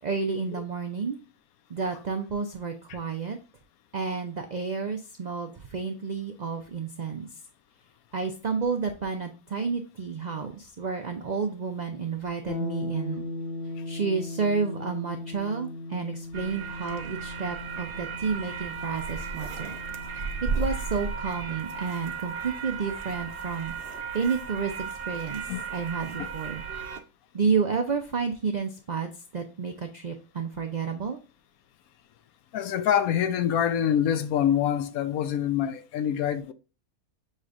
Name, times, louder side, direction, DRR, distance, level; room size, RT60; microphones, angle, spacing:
voice 1, 0.0-1.2 1.7-3.4 3.9-7.3 8.1-13.3 13.9-19.7 20.4-23.7 24.1-25.4 25.7-26.6 27.3-31.2, right 5 dB, 80° right, 0.3 m, -30 dB
sound 1, 12.5-22.2, left 2 dB, 50° left, 0.9 m, -38 dB
sound 2, 16.3-27.0, right 5 dB, 55° right, 0.7 m, -35 dB
voice 2, 32.5-36.5, left 9 dB, 80° left, 1.0 m, -25 dB
6.5 x 3.2 x 2.5 m
omnidirectional pair, 1.5 m